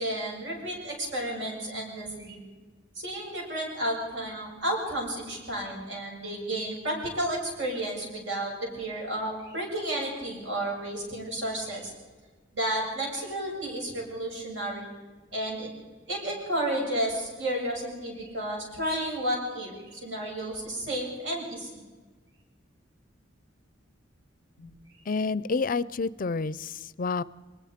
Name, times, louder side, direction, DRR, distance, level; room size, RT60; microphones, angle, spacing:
voice 1, 0.0-2.4 2.9-11.9 12.5-14.9 15.3-15.7 16.1-21.8 24.6-24.7, right 1 dB, 70° right, -2 dB, 7.7 m, -32 dB
voice 2, 25.1-27.2, left 4 dB, 45° left, 19 dB, 0.5 m, -29 dB
23.5 x 21.5 x 5.1 m, 1.4 s
head